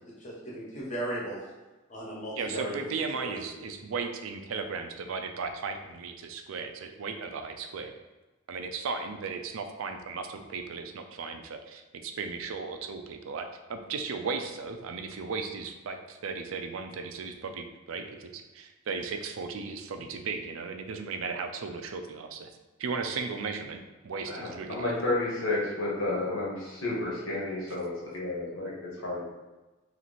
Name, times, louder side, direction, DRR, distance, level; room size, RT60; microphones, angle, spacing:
voice 1, 0.2-1.4 1.9-2.9 3.1-3.5, right 1 dB, 35° left, -5 dB, 1.2 m, -36 dB
voice 2, 2.4-7.9 8.5-22.5 22.8-25.0, right 4 dB, 75° right, 6 dB, 0.4 m, -36 dB
voice 3, 24.3-28.7 29.0-29.2, left 2 dB, 70° left, -5 dB, 1.4 m, -31 dB
3.2 x 3.0 x 4.1 m, 1.2 s
head